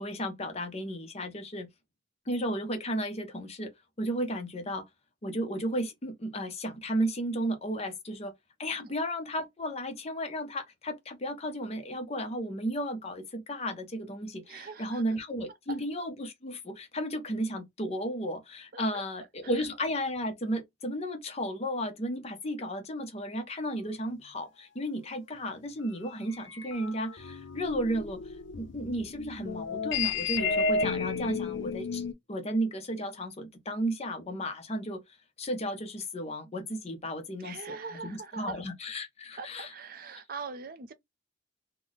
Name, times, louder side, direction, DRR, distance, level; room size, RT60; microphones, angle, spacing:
voice 1, 0.0-1.7 2.3-3.7 4.0-4.8 5.2-8.3 8.6-37.7 38.0-39.7, equal, 35° left, 0.6 m, -34 dB
voice 2, 14.5-15.0 18.7-19.0 19.6-19.7 37.4-38.6 39.4-40.9, right 4 dB, 50° right, 0.5 m, -42 dB
sound 1, 26.3-32.1, left 4 dB, 75° left, 0.5 m, -32 dB
3.2 x 2.1 x 3.8 m
head